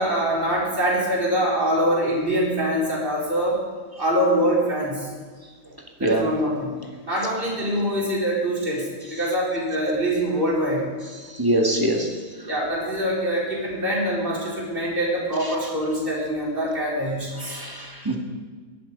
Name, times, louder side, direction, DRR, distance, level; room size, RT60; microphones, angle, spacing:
voice 1, 0.0-3.6 4.0-5.1 6.0-6.7 7.0-8.8 9.1-10.9 12.4-17.6, equal, 45° right, -6 dB, 4.7 m, -24 dB
voice 2, 11.4-12.1 17.5-18.2, right 1 dB, 15° right, 1 dB, 2.0 m, -23 dB
21.0 x 11.5 x 5.4 m, 1.4 s
omnidirectional pair, 1.4 m